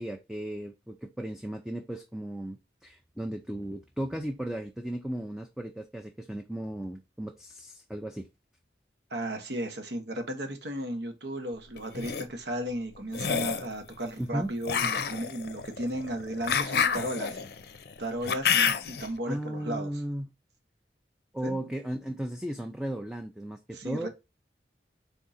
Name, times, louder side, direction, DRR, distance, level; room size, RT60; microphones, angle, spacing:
voice 1, 0.0-8.3 14.2-14.5 19.3-20.3 21.3-24.1, right 1 dB, 5° right, 0.4 m, -35 dB
voice 2, 9.1-17.4 18.0-19.9 21.4-21.6 23.7-24.1, right 1 dB, 75° right, 1.0 m, -35 dB
sound 1, 11.8-12.2 13.1-13.7 14.6-19.1, left 6 dB, 60° left, 0.5 m, -28 dB
3.8 x 3.5 x 4.0 m
head